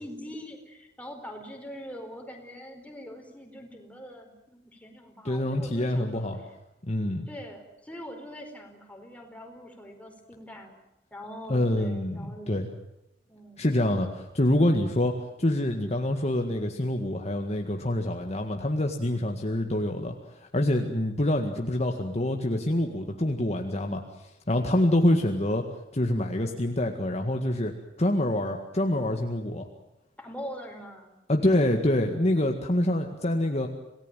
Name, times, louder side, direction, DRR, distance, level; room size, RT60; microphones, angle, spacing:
voice 1, 0.0-6.3 7.3-10.8 11.1-12.5 13.3-13.7 30.2-31.7, equal, 10° left, 3 dB, 4.7 m, -43 dB
voice 2, 5.2-6.4 6.9-7.3 11.5-12.7 13.6-15.1 15.4-25.6 25.9-27.7 28.0-29.7 31.3-33.7, left 1 dB, 35° left, 4 dB, 1.9 m, -26 dB
27.5 x 18.5 x 9.2 m, 0.91 s
head